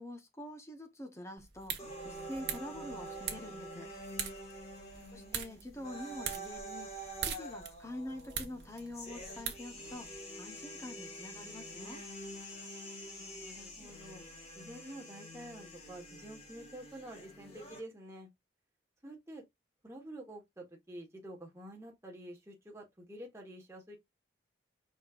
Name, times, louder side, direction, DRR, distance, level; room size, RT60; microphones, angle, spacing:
voice 1, 0.0-1.8 2.0-3.9 5.1-6.9 7.2-10.1 10.4-12.0, left 1 dB, 15° left, 0.9 m, -45 dB
sound 1, 1.4-10.2, right 8 dB, 55° right, 1.1 m, -43 dB
sound 2, 1.8-17.8, equal, 35° left, 2.0 m, -47 dB
voice 2, 4.8-5.5 13.1-14.2 14.5-18.3 19.0-19.4 19.8-24.0, right 1 dB, 15° right, 1.3 m, -49 dB
5.2 x 4.1 x 2.4 m
head